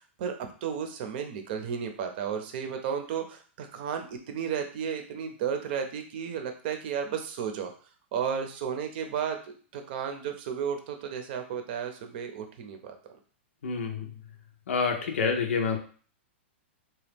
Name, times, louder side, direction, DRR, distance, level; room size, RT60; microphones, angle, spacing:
voice 1, 0.0-7.7 8.1-13.0, right 7 dB, 50° right, 6 dB, 0.6 m, -33 dB
voice 2, 13.6-14.1 14.7-15.8, left 5 dB, 90° left, 3 dB, 0.6 m, -27 dB
3.0 x 2.2 x 3.4 m, 0.42 s
hypercardioid pair, 145°, 7 cm